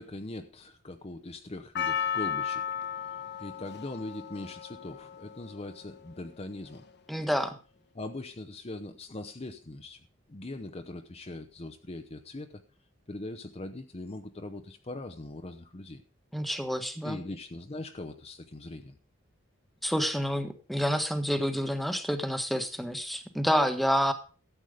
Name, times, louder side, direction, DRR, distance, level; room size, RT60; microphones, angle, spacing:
voice 1, 0.0-2.6 3.4-6.8 7.9-10.0 10.3-12.6 13.1-16.0 17.0-19.0, left 2 dB, 30° left, 8 dB, 0.8 m, -41 dB
Percussion, 1.7-6.1 6.7-6.8, left 8 dB, 60° left, 1.2 m, -34 dB
voice 2, 7.1-7.6 16.3-17.2 19.8-24.1, equal, ahead, 7 dB, 1.4 m, -28 dB
13.5 x 8.2 x 5.0 m, 0.36 s
head